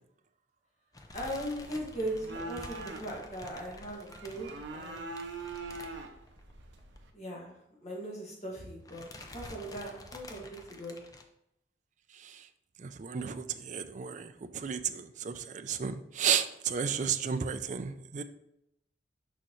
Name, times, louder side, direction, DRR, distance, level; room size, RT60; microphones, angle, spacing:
sound 1, 0.9-6.5 6.8-7.0 7.2-7.3 8.3-8.6 8.9-11.2, left 2 dB, 20° left, 0.5 m, -50 dB
voice 1, 1.1-5.1 7.1-7.5 7.8-11.0, right 1 dB, 35° left, -3 dB, 1.9 m, -39 dB
sound 2, 1.1-7.1, right 3 dB, 75° right, 0.8 m, -44 dB
voice 2, 12.8-18.2, right 7 dB, 40° right, 10 dB, 0.4 m, -33 dB
6.3 x 5.6 x 3.1 m, 0.82 s
head